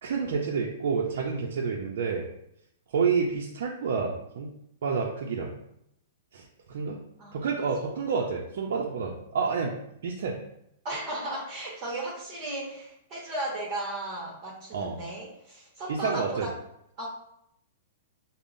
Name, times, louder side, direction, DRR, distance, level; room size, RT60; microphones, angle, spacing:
voice 1, 0.0-2.3 2.9-4.5 4.8-5.5 6.3-7.0 7.3-9.7 10.0-10.4 14.7-14.9 15.9-16.5, right 5 dB, 65° right, -2 dB, 0.5 m, -29 dB
voice 2, 10.8-16.5 17.0-17.1, right 1 dB, 30° right, -4 dB, 1.0 m, -35 dB
5.3 x 2.0 x 2.5 m, 0.77 s
hypercardioid pair, 160°, 0 cm